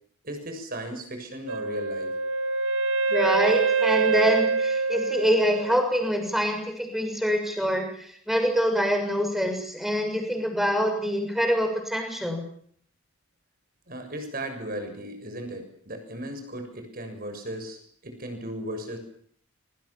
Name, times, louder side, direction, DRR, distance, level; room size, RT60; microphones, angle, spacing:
voice 1, 0.2-2.1 13.9-19.0, right 1 dB, 40° right, 6 dB, 7.0 m, -36 dB
Wind instrument woodwind instrument, 1.5-6.3, right 4 dB, 55° right, 1.9 m, -25 dB
voice 2, 3.1-12.4, equal, ahead, 4 dB, 6.7 m, -25 dB
25.5 x 25.5 x 7.4 m, 0.62 s
head